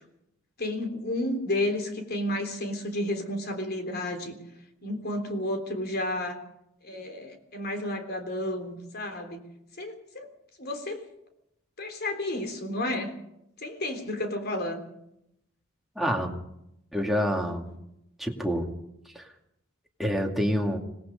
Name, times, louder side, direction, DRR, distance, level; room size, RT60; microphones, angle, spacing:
voice 1, 0.6-4.4 4.8-6.4 6.8-9.4 9.8-10.3 10.6-11.0 11.8-13.1 13.6-14.8, left 1 dB, 50° left, 6 dB, 3.6 m, -31 dB
voice 2, 16.0-16.4 16.9-17.7 18.2-18.7 19.1-19.3 20.0-20.8, equal, ahead, 1 dB, 2.3 m, -27 dB
25.5 x 19.0 x 5.3 m, 0.81 s
head